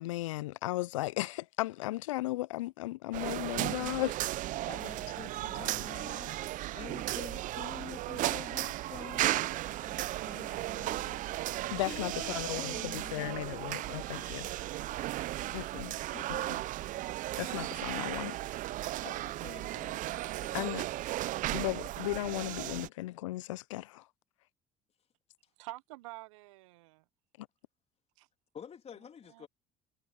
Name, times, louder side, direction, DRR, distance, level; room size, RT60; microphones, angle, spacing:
voice 1, 0.0-4.2 11.7-14.5 15.5-16.0 17.4-18.4 20.5-20.8 21.5-24.0 27.4-27.5, left 17 dB, 75° left, 0.5 m, -35 dB
sound 1, 3.1-22.9, right 16 dB, 55° right, 0.7 m, -35 dB
voice 2, 4.6-6.4 6.7-11.2 11.5-14.6 14.8-15.0 16.1-16.5 19.0-20.1 20.4-20.9 28.5-29.5, left 7 dB, 40° left, 3.2 m, -49 dB
voice 3, 25.6-27.0 28.2-28.3 29.3-29.5, right 21 dB, 75° right, 1.2 m, -47 dB
hypercardioid pair, 60°, 16 cm